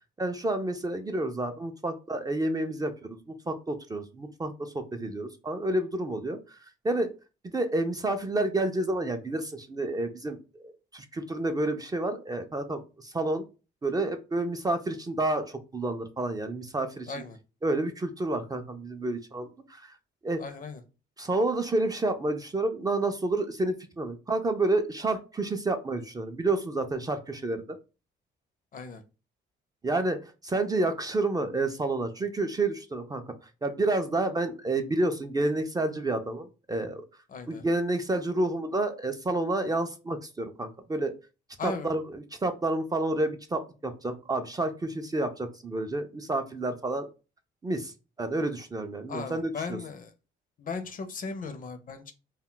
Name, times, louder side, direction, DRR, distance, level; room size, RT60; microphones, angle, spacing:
voice 1, 0.2-3.2 3.5-6.6 6.8-7.1 7.4-10.4 10.6-13.5 13.8-17.2 17.6-20.0 20.2-20.4 21.2-27.6 29.8-33.3 33.6-37.0 37.5-41.1 41.6-47.1 47.6-47.9 48.2-49.8, right 2 dB, 20° right, 6 dB, 0.4 m, -29 dB
voice 2, 17.1-17.4 20.4-20.8 28.7-29.0 37.3-37.6 41.6-41.9 49.1-50.1 50.6-52.1, left 4 dB, 45° left, 8 dB, 0.5 m, -37 dB
2.2 x 2.1 x 3.7 m, 0.31 s
cardioid pair, 90°, 20 cm